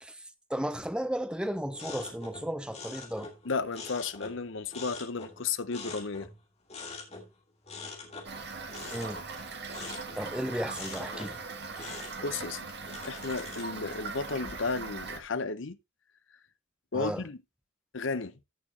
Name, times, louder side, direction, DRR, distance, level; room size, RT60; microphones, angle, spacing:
voice 1, 0.0-3.3 8.9-9.2 10.2-11.4 16.9-17.2, equal, 5° right, 0.7 m, -34 dB
sound 1, 1.7-4.4 4.7-6.4 6.7-7.3 7.6-10.4 10.7-11.4 11.7-14.0, left 4 dB, 30° left, 2.5 m, -44 dB
voice 2, 3.4-6.3 11.8-12.7 13.0-15.8 16.9-17.4 17.9-18.3, left 4 dB, 65° left, 0.8 m, -33 dB
Toilet flush / Fill (with liquid), 8.3-15.2, right 4 dB, 55° right, 1.7 m, -40 dB
14.5 x 6.7 x 2.9 m
head